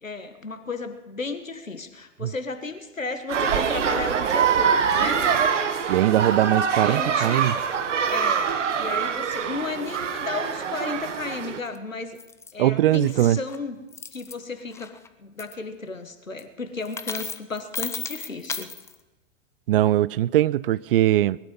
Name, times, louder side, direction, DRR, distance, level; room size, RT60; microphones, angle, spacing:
voice 1, 0.0-5.3 6.8-7.4 8.1-12.2 12.5-13.8 14.1-18.7, left 3 dB, 90° left, 1.7 m, -34 dB
sound 1, 3.3-11.6, right 7 dB, 70° right, 1.4 m, -24 dB
voice 2, 5.9-7.6 12.6-13.4 19.7-21.4, right 13 dB, 50° right, 0.5 m, -21 dB
sound 2, 11.6-11.8 12.2-12.5 12.9-13.6 13.9-14.3 14.7-15.1 15.4-15.5 16.4-16.5 16.8-19.0, left 5 dB, 5° left, 0.5 m, -35 dB
20.0 x 11.5 x 5.5 m
figure-of-eight pair, 105°, 38 cm